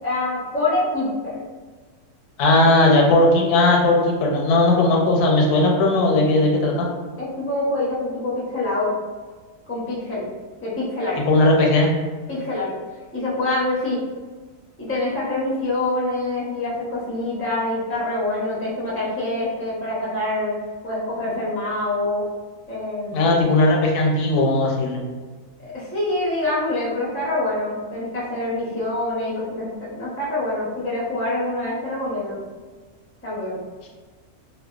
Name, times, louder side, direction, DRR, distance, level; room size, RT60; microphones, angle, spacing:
voice 1, 0.0-1.4 4.7-4.8 7.2-8.9 9.7-10.2 10.6-11.2 12.3-12.7 13.1-14.0 14.8-20.5 20.8-22.2 22.7-23.3 25.6-32.4 33.2-33.6, left 2 dB, 20° left, -8 dB, 0.3 m, -25 dB
voice 2, 2.4-6.9 11.3-11.9 23.1-25.0, left 2 dB, 80° left, 0 dB, 1.1 m, -17 dB
2.6 x 2.1 x 2.3 m, 1.4 s
omnidirectional pair, 1.6 m